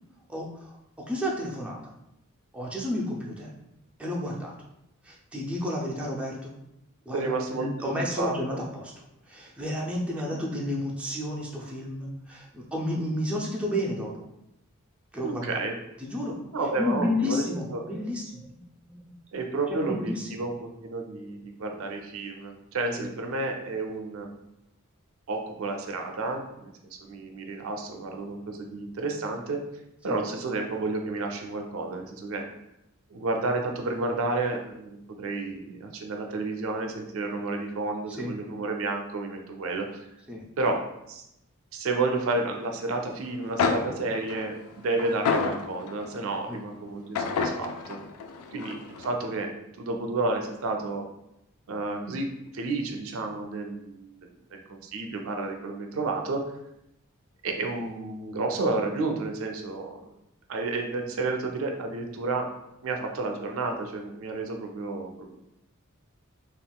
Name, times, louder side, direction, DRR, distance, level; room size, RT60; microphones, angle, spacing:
voice 1, 0.3-1.9 2.5-3.5 4.0-4.5 5.0-6.5 7.1-8.9 9.3-14.2 15.1-15.6 16.0-16.4 16.8-19.4 19.7-20.4 23.0-23.1 30.0-30.2 38.2-38.3 40.3-40.4 46.5-46.6, left 1 dB, 5° right, -3 dB, 0.4 m, -32 dB
voice 2, 7.1-7.9 8.2-8.6 15.2-15.7 16.5-17.4 17.7-17.8 19.3-24.3 25.3-29.6 30.0-32.4 33.1-40.1 40.6-41.2 41.7-48.0 48.5-51.1 51.7-52.3 52.5-54.3 54.7-56.4 57.4-60.0 60.5-62.5 62.8-65.4, right 3 dB, 65° right, 3 dB, 0.4 m, -31 dB
sound 1, 43.3-43.4 43.6-46.2 47.1-49.1, left 4 dB, 85° left, 0.3 m, -29 dB
3.5 x 2.4 x 2.2 m, 0.84 s
head